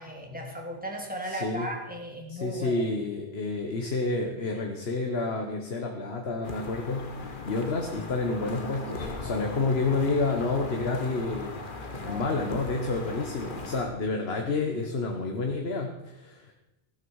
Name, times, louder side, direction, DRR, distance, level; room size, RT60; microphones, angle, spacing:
voice 1, 0.0-2.8 12.0-12.4, right 1 dB, 10° right, 0 dB, 2.7 m, -36 dB
voice 2, 1.3-1.7 2.3-11.5 11.8-16.5, left 3 dB, 75° left, 2 dB, 1.5 m, -29 dB
sound 1, 6.4-13.9, left 2 dB, 55° left, 1.6 m, -39 dB
15.5 x 12.0 x 4.8 m, 0.93 s
omnidirectional pair, 1.1 m